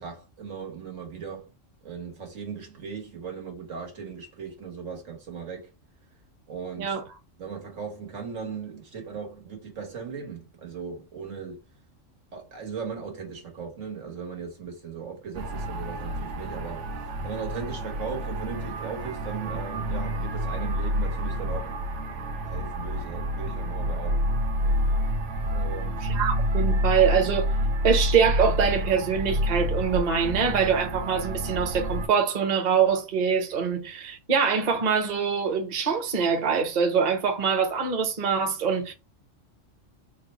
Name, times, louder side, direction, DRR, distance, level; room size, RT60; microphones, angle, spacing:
voice 1, 0.0-1.5 1.8-5.7 6.5-7.0 7.4-11.6 12.3-21.7 22.4-24.4 25.5-26.1, right 6 dB, 85° right, 1.7 m, -38 dB
sound 1, 15.3-32.1, equal, 70° right, 1.0 m, -28 dB
voice 2, 26.0-27.5 27.8-38.9, right 6 dB, 40° right, 0.8 m, -24 dB
3.9 x 2.2 x 4.2 m
omnidirectional pair, 1.3 m